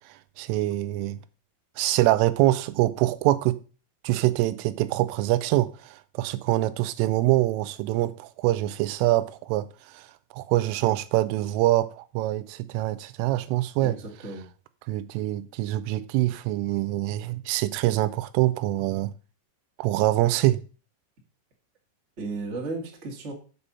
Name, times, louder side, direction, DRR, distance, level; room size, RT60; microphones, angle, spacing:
voice 1, 0.1-1.2 1.8-3.6 4.0-10.1 10.3-14.0 14.9-19.1 19.8-20.6, right 16 dB, 85° right, 3.1 m, -25 dB
voice 2, 13.8-14.5 22.2-23.3, right 3 dB, 60° right, 0.7 m, -34 dB
7.7 x 6.9 x 5.5 m
omnidirectional pair, 5.8 m